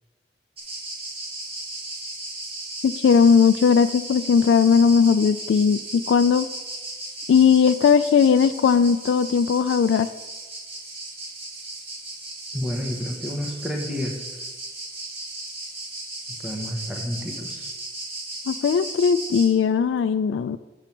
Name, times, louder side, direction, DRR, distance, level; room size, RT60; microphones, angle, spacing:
sound 1, 0.6-19.5, right 2 dB, 35° right, 2.2 m, -36 dB
voice 1, 2.8-6.5 7.3-10.1 18.5-20.6, left 6 dB, 85° left, 11 dB, 0.3 m, -18 dB
voice 2, 12.5-14.4 16.4-17.7, equal, 5° right, 0 dB, 1.0 m, -30 dB
7.0 x 6.8 x 5.9 m, 1.2 s
head